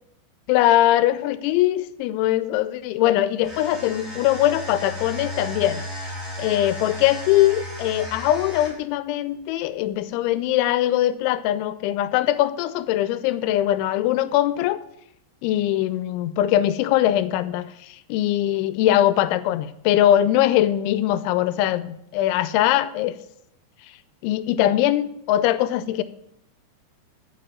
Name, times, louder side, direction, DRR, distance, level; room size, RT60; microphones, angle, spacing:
voice 1, 0.5-5.8 6.4-14.8 15.4-23.2 24.2-26.0, left 13 dB, 85° left, 14 dB, 2.9 m, -21 dB
sound 1, 3.4-8.9, equal, ahead, 2.4 m, -34 dB
10.0 x 5.6 x 7.7 m, 0.78 s
omnidirectional pair, 5.4 m